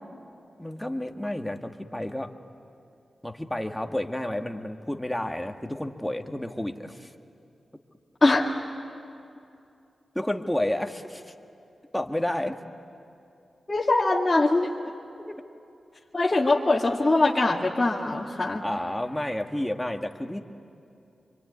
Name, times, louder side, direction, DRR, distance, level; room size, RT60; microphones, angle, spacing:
voice 1, 0.6-2.3 3.2-7.1 10.2-11.3 11.9-12.6 15.3-15.4 18.6-20.4, left 1 dB, 10° left, 4 dB, 1.9 m, -30 dB
voice 2, 8.2-8.5 13.7-14.7 16.1-18.6, left 2 dB, 35° left, -3 dB, 2.2 m, -22 dB
26.0 x 23.5 x 9.6 m, 2.6 s
cardioid pair, 40°, 0 cm